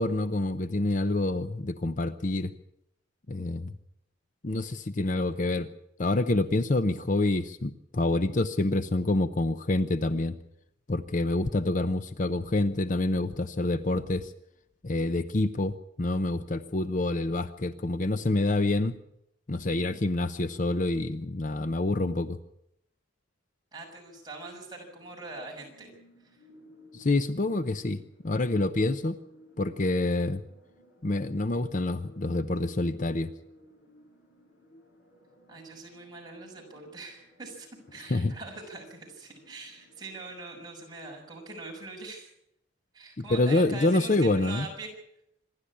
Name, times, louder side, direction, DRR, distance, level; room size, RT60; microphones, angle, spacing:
voice 1, 0.0-2.5 3.3-3.7 4.4-5.7 6.0-10.4 10.9-14.3 14.8-19.0 19.5-22.4 26.9-29.2 29.6-30.4 31.0-33.3 38.1-38.3 43.2-44.7, left 2 dB, 40° left, 11 dB, 0.7 m, -27 dB
voice 2, 23.7-25.9 26.2-26.4 35.5-42.3 42.9-44.9, right 3 dB, 20° right, -1 dB, 6.5 m, -43 dB
sound 1, 24.2-40.4, left 1 dB, 60° left, 7.5 m, -57 dB
26.0 x 12.0 x 8.6 m, 0.78 s
head